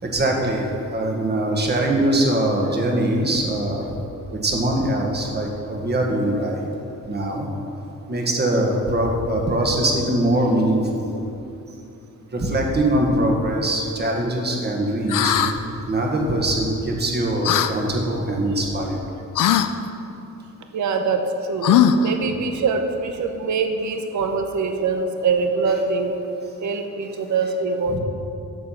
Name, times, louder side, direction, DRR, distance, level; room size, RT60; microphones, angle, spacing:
voice 1, 0.0-3.9 4.3-6.7 7.0-7.5 8.1-11.1 12.3-15.5 15.8-19.0 27.9-28.0, right 1 dB, 30° right, 0 dB, 1.7 m, -22 dB
sound 1, 15.1-15.5 17.4-17.7 19.3-19.7 21.6-22.1, left 8 dB, 75° left, 0.6 m, -18 dB
voice 2, 20.7-26.1 26.6-28.0, right 4 dB, 60° right, 6 dB, 1.0 m, -23 dB
11.5 x 7.5 x 5.8 m, 2.7 s
cardioid pair, 120°, 33 cm